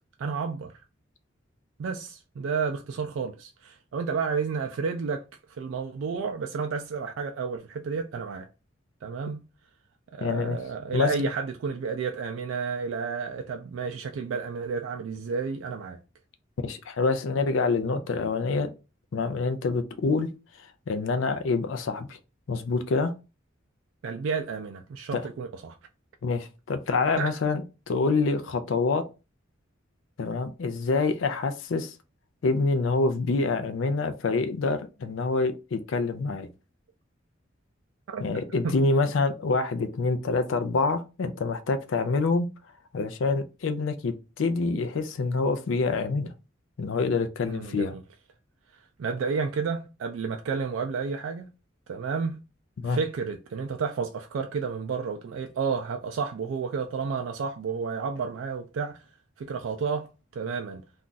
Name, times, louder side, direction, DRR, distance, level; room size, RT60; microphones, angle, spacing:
voice 1, 0.2-0.8 1.8-5.2 5.5-8.5 9.0-9.4 10.1-16.0 24.0-25.8 27.2-27.3 38.1-38.2 38.6-38.8 47.5-48.0 49.0-51.5 51.9-52.4 52.9-59.0 59.4-60.8, right 5 dB, 75° right, 0.3 m, -31 dB
voice 2, 10.2-10.6 10.9-11.3 16.6-18.7 19.1-20.3 20.9-22.2 22.5-23.1 25.1-25.2 26.2-29.0 30.2-31.9 32.4-36.5 38.2-42.5 42.9-46.3 46.8-47.9 52.8-53.0, left 3 dB, 75° left, 0.4 m, -26 dB
2.4 x 2.3 x 3.8 m
head